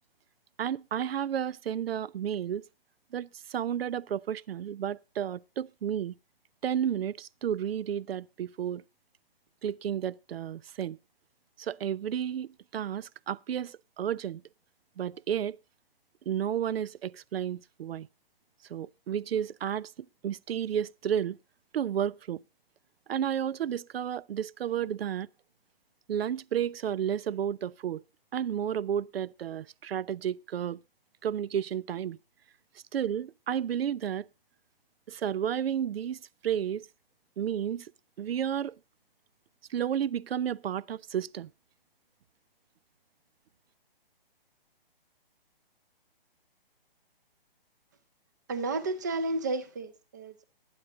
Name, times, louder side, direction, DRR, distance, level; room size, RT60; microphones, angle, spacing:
voice 1, 0.6-2.6 3.1-6.1 6.6-8.8 9.6-11.0 11.6-14.4 15.0-15.6 16.3-18.1 18.7-19.9 20.2-21.4 21.7-22.4 23.1-25.3 26.1-28.0 28.3-30.8 31.2-32.2 32.9-34.3 35.1-36.8 37.4-37.9 38.2-38.7 39.7-41.5, right 9 dB, 90° right, 0.5 m, -32 dB
voice 2, 48.5-50.4, right 2 dB, 20° right, 0.5 m, -32 dB
20.0 x 8.8 x 2.5 m
hypercardioid pair, 165°, 29 cm